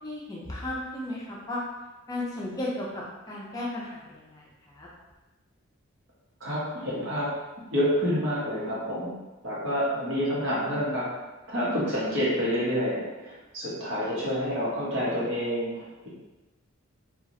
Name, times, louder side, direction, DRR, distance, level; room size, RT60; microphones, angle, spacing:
voice 1, 0.0-1.6 2.1-4.9 14.0-14.3, left 1 dB, 20° left, -5 dB, 0.5 m, -35 dB
voice 2, 6.4-7.3 7.7-9.1 9.4-11.1 11.5-16.1, equal, 65° right, -8 dB, 1.1 m, -28 dB
2.9 x 2.4 x 2.6 m, 1.1 s
head